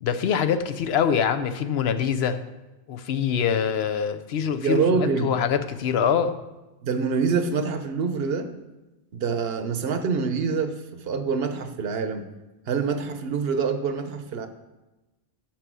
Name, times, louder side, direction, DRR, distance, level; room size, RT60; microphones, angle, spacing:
voice 1, 0.0-2.4 2.9-6.4, left 7 dB, 75° left, 10 dB, 0.9 m, -24 dB
voice 2, 4.6-5.3 6.8-8.5 9.1-12.2 12.7-14.5, right 5 dB, 70° right, 8 dB, 1.0 m, -25 dB
8.3 x 6.0 x 6.1 m, 1.1 s
omnidirectional pair, 1.1 m